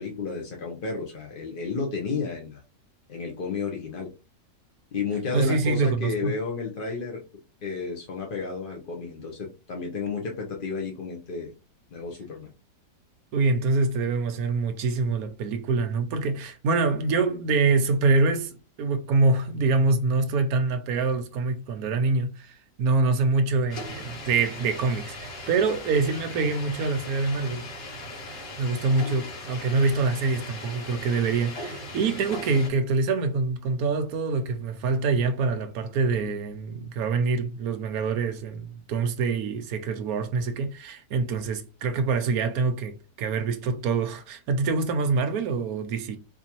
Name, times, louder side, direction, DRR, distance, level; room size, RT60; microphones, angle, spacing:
voice 1, 0.0-2.6 3.1-4.1 4.9-7.2 7.6-11.5 11.9-12.5, left 4 dB, 55° left, 0.6 m, -32 dB
voice 2, 5.3-6.3 13.3-27.6 28.6-46.2, right 4 dB, 70° right, 1.0 m, -25 dB
sound 1, 23.7-32.7, left 1 dB, 90° left, 2.5 m, -39 dB
4.2 x 2.7 x 2.9 m
omnidirectional pair, 1.8 m